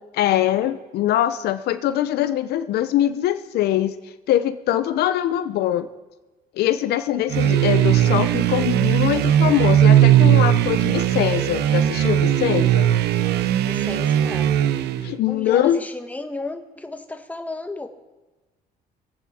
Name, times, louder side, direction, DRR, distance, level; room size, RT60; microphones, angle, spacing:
voice 1, 0.2-3.9 4.3-5.9 6.6-12.9 15.0-15.8, left 12 dB, 70° left, 11 dB, 0.7 m, -22 dB
sound 1, 7.3-15.1, right 11 dB, 75° right, 0.7 m, -18 dB
voice 2, 13.6-14.6 15.2-17.9, left 2 dB, 10° left, 6 dB, 1.3 m, -33 dB
24.5 x 8.6 x 4.3 m, 1.2 s
cardioid pair, 110°, 17 cm